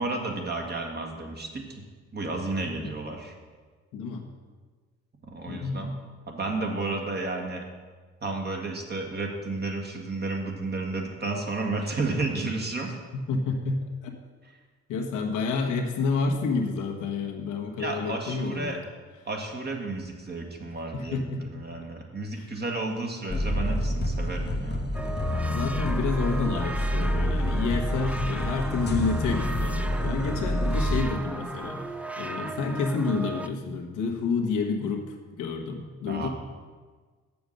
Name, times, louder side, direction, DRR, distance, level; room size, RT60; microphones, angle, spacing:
voice 1, 0.0-1.8 2.1-3.3 5.3-5.9 6.3-7.6 8.2-13.0 17.8-18.8 19.2-24.8 36.1-36.3, right 3 dB, 35° right, 1 dB, 1.7 m, -32 dB
voice 2, 3.9-4.3 5.5-5.9 13.1-14.1 14.9-18.8 20.9-21.4 22.3-22.5 25.3-31.8 32.2-36.3, left 4 dB, 85° left, 2 dB, 1.3 m, -29 dB
sound 1, 23.3-31.0, equal, 35° left, 1.0 m, -28 dB
sound 2, 24.9-33.5, right 1 dB, 5° right, 0.4 m, -36 dB
7.2 x 7.0 x 6.6 m, 1.5 s
cardioid pair, 90°, 30 cm